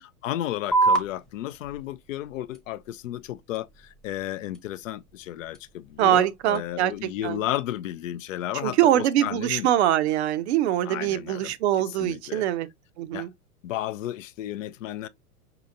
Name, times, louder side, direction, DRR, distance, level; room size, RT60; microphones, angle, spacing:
voice 1, 0.0-9.7 10.8-11.5 11.9-12.4 13.1-13.3 13.6-15.1, left 13 dB, 55° left, 0.6 m, -33 dB
sound 1, 0.7-7.7, right 3 dB, ahead, 0.8 m, -31 dB
voice 2, 6.0-6.9 7.2-7.4 8.6-12.7 13.0-13.3, right 12 dB, 45° right, 0.6 m, -23 dB
5.4 x 2.9 x 2.5 m
figure-of-eight pair, 100°, 45 cm